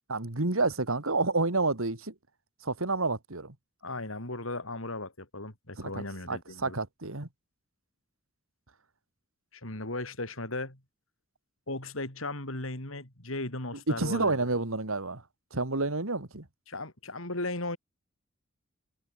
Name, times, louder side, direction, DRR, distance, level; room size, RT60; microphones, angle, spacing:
voice 1, 0.1-2.1 2.6-3.5 5.8-7.3 13.9-15.2 15.5-16.4, right 3 dB, 85° right, 2.5 m, -29 dB
voice 2, 3.8-6.8 9.5-10.8 11.7-14.4 16.7-17.8, left 2 dB, 80° left, 5.6 m, -36 dB
head